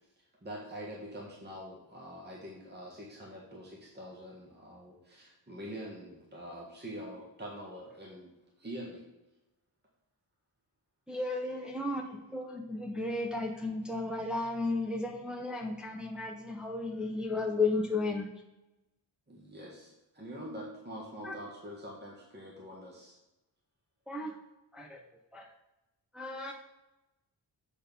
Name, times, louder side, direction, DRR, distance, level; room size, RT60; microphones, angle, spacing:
voice 1, 0.4-8.3 8.6-9.0 19.3-23.2, equal, 25° right, -3 dB, 1.7 m, -45 dB
voice 2, 11.1-18.3 21.2-21.3 24.1-24.3 24.7-25.0 25.3-25.5 26.1-26.5, left 3 dB, ahead, 1 dB, 0.8 m, -34 dB
7.9 x 4.5 x 5.3 m, 0.97 s
wide cardioid pair, 90°, 44 cm